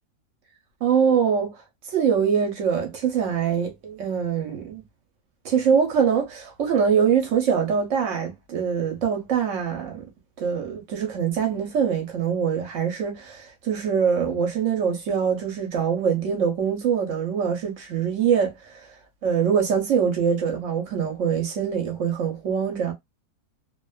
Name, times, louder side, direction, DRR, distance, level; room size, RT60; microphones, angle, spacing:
voice 1, 0.8-1.5 1.9-4.8 5.4-10.1 10.4-19.0 19.2-22.9, right 7 dB, 65° right, 0.8 m, -23 dB
2.5 x 2.3 x 2.2 m
omnidirectional pair, 1.7 m